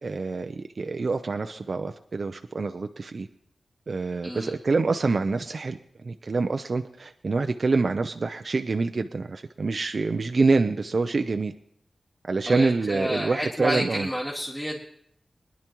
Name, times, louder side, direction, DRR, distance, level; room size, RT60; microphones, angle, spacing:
voice 1, 0.0-3.3 3.9-11.5 12.3-14.1, right 3 dB, 50° right, 7 dB, 0.5 m, -26 dB
voice 2, 4.2-4.5 12.5-14.8, equal, 10° left, -5 dB, 2.0 m, -30 dB
24.0 x 10.5 x 3.0 m, 0.70 s
wide cardioid pair, 115°, 0 cm